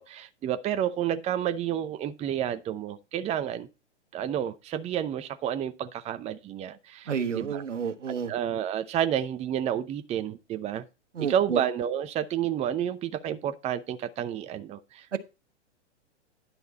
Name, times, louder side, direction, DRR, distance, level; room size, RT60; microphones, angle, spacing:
voice 1, 0.0-3.7 4.1-7.6 8.3-10.9 11.2-15.2, right 10 dB, 20° right, 0.7 m, -30 dB
voice 2, 7.1-8.3 11.1-11.6 15.1-15.2, right 6 dB, 85° right, 1.4 m, -30 dB
10.5 x 6.6 x 4.0 m
hypercardioid pair, 115°, 35 cm